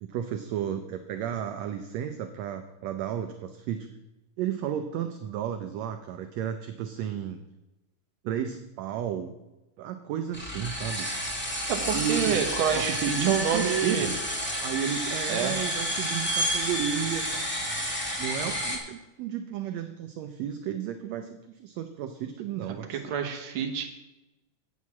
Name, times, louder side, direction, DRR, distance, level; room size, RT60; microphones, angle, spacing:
voice 1, 0.0-3.9 4.4-7.4 8.2-9.3 9.8-11.1 11.9-12.4 12.7-14.2 14.6-17.4 18.2-23.0, right 9 dB, 80° right, 8 dB, 1.6 m, -33 dB
sound 1, 10.3-18.8, equal, 10° left, 0.6 m, -30 dB
voice 2, 11.7-14.1 15.3-15.5 22.9-23.9, right 8 dB, 55° right, 4 dB, 1.5 m, -28 dB
8.4 x 6.3 x 7.1 m, 1.0 s
omnidirectional pair, 3.6 m